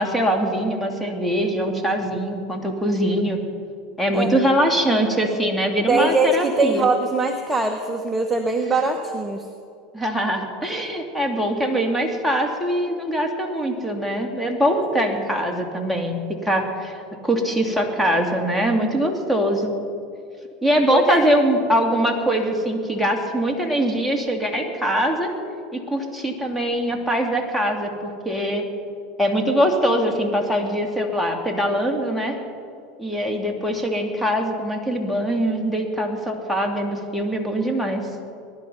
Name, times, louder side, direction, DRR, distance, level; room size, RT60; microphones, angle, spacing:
voice 1, 0.0-3.4 4.0-6.9 9.9-19.7 20.6-25.3 25.7-28.7 29.2-32.4 33.0-38.1, equal, ahead, 1 dB, 2.7 m, -22 dB
voice 2, 5.9-9.5 14.8-14.9 20.9-21.2, right 3 dB, 15° right, 4 dB, 1.1 m, -22 dB
21.5 x 11.0 x 5.6 m, 2.4 s
hypercardioid pair, 90°, 0 cm